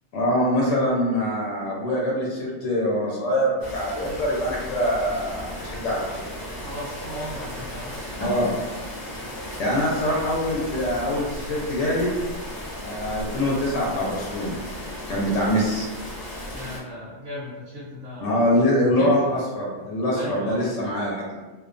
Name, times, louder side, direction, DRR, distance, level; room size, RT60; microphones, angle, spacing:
voice 1, 0.1-6.2 8.2-8.5 9.6-12.1 12.8-14.6 15.1-15.9 18.2-21.4, left 1 dB, 90° left, -4 dB, 1.0 m, -24 dB
sound 1, 3.6-16.8, left 1 dB, 30° left, 0.4 m, -35 dB
voice 2, 6.6-8.3 16.5-18.6 18.9-19.4 20.1-20.7, equal, 65° right, -5 dB, 0.8 m, -36 dB
2.3 x 2.2 x 2.4 m, 1.2 s
omnidirectional pair, 1.2 m